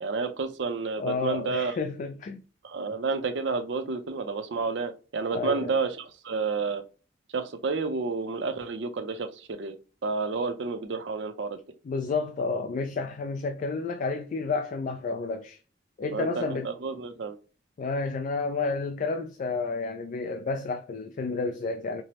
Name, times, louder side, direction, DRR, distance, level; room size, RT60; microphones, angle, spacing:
voice 1, 0.0-1.8 2.6-6.8 7.3-9.8 10.0-11.6 16.1-17.4, right 4 dB, 75° right, 0.5 m, -30 dB
voice 2, 1.0-2.4 5.3-5.7 11.9-15.6 16.0-16.7 17.8-22.0, left 4 dB, 45° left, 0.3 m, -30 dB
4.6 x 2.0 x 2.8 m
head